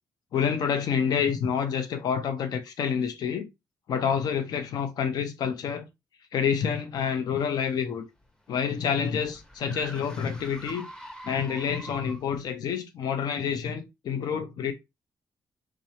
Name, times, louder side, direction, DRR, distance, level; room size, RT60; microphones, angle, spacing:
voice 1, 0.3-3.5 3.9-5.9 6.3-8.0 8.5-10.9 11.2-14.7, left 7 dB, 75° left, 0.7 m, -28 dB
sound 1, 7.9-12.4, right 1 dB, 10° left, 0.8 m, -45 dB
3.6 x 3.0 x 2.9 m
cardioid pair, 115°, 7 cm